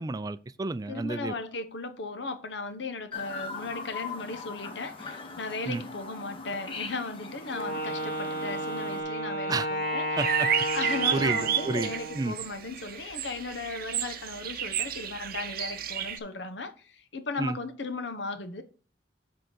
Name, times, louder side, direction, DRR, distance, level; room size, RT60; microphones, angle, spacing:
voice 1, 0.0-1.3 5.7-5.8 9.5-9.7 10.2-10.5 11.1-12.4 17.4-17.6, right 3 dB, 20° right, 0.3 m, -31 dB
voice 2, 0.9-10.2 10.7-18.6, left 3 dB, 85° left, 1.0 m, -36 dB
Chirp tweet, 3.1-9.0, left 4 dB, 30° left, 1.1 m, -41 dB
Wind instrument woodwind instrument, 7.5-12.4, equal, 60° left, 2.2 m, -32 dB
sound 1, 10.2-16.2, right 9 dB, 55° right, 0.6 m, -31 dB
7.7 x 3.7 x 6.0 m
head